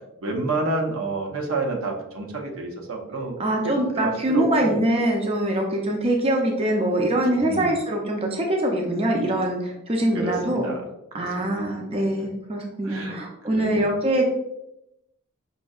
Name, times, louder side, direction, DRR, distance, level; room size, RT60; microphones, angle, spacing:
voice 1, 0.2-3.3 3.6-4.8 7.5-7.7 10.1-10.8 11.1-11.5 12.2-12.3 12.8-13.2 13.5-13.9, right 3 dB, 75° right, 1 dB, 0.7 m, -29 dB
voice 2, 3.4-10.7 11.1-14.3, right 1 dB, 30° right, 1 dB, 0.5 m, -23 dB
5.2 x 2.6 x 2.3 m, 0.86 s
head